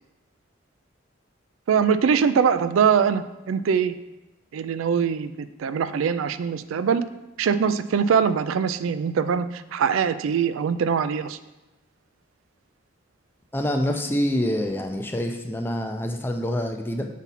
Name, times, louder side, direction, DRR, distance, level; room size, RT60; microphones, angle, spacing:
voice 1, 1.7-4.0 4.5-7.0 7.4-11.4, right 6 dB, 85° right, 13 dB, 0.3 m, -22 dB
voice 2, 13.5-17.1, left 1 dB, 10° left, 4 dB, 0.4 m, -26 dB
7.1 x 4.1 x 4.1 m, 1.0 s
head